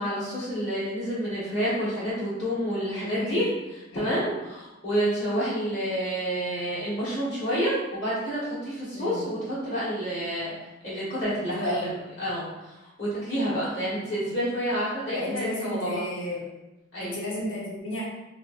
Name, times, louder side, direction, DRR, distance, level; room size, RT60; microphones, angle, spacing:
voice 1, 0.0-3.5 3.9-10.5 10.8-11.9 12.2-16.0 16.9-17.2, equal, 55° left, -10 dB, 1.3 m, -29 dB
voice 2, 3.1-3.4 3.9-4.2 8.9-9.3 11.5-11.9 15.1-16.4 17.0-18.0, left 1 dB, 75° left, -6 dB, 0.8 m, -32 dB
3.1 x 2.9 x 2.5 m, 1.0 s
head